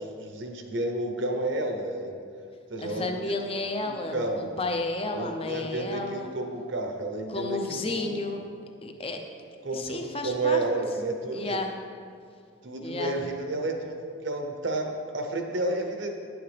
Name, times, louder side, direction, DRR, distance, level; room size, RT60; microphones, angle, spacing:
voice 1, 0.0-2.2 2.7-3.2 3.8-4.5 5.1-8.3 9.6-11.6 12.6-14.9 15.1-16.1, right 2 dB, 60° right, 4 dB, 0.9 m, -31 dB
voice 2, 2.8-6.3 7.3-8.5 8.8-9.2 9.7-10.6 11.3-11.7 12.8-13.2, left 2 dB, 25° left, 4 dB, 0.6 m, -32 dB
10.0 x 8.0 x 3.4 m, 2.3 s
head